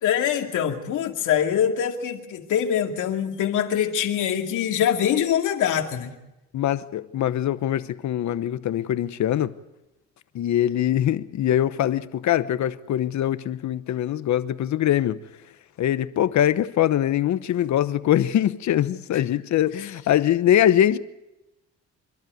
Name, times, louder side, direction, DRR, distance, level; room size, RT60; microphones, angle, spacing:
voice 1, 0.0-6.2, left 9 dB, 85° left, 2.4 m, -24 dB
voice 2, 6.5-9.5 10.3-15.2 15.8-21.0, left 11 dB, 65° left, 1.1 m, -22 dB
27.0 x 12.5 x 9.4 m
cardioid pair, 90°, 30 cm